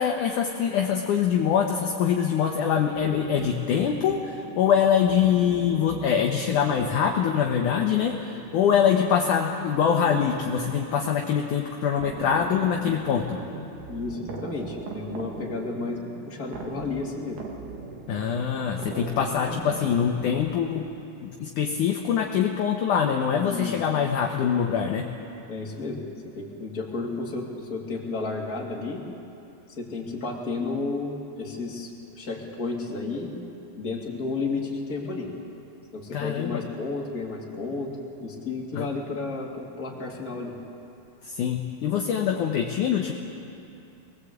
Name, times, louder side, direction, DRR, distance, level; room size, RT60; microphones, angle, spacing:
voice 1, 0.0-13.4 18.1-20.9 21.2-25.1 36.1-36.6 38.7-38.9 41.2-43.1, left 8 dB, 65° left, 2 dB, 2.2 m, -24 dB
sound 1, 2.9-21.1, right 4 dB, 60° right, 3.2 m, -40 dB
voice 2, 13.9-16.0 16.3-17.4 18.9-19.2 23.5-23.8 25.5-26.0 26.4-29.1 29.8-33.3 33.8-35.3 35.9-37.9 38.2-40.5, left 3 dB, 25° left, -2 dB, 2.8 m, -32 dB
22.5 x 20.5 x 8.1 m, 2.8 s
omnidirectional pair, 4.6 m